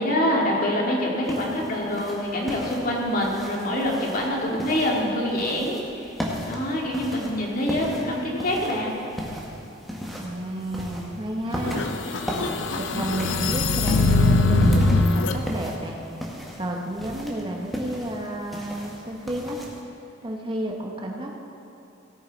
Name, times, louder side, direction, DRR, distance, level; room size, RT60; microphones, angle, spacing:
voice 1, 0.0-6.1 6.5-8.9, left 1 dB, 50° left, -2 dB, 2.2 m, -25 dB
sound 1, 1.2-19.8, equal, ahead, 1.6 m, -36 dB
voice 2, 1.4-1.8 10.2-11.9 12.8-16.0 16.6-19.6 20.2-21.4, right 1 dB, 25° right, 0 dB, 1.1 m, -32 dB
sound 2, 11.6-15.4, left 2 dB, 75° left, 0.7 m, -21 dB
17.0 x 9.5 x 4.0 m, 2.9 s
head